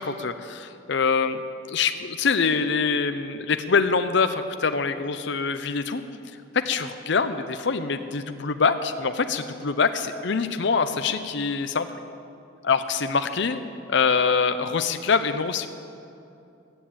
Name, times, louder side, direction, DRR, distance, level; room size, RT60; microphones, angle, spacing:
voice 1, 0.0-1.4 1.7-6.0 6.7-11.9 12.6-13.6 13.9-15.7, left 5 dB, 60° left, 9 dB, 0.6 m, -24 dB
13.5 x 9.1 x 8.6 m, 2.6 s
head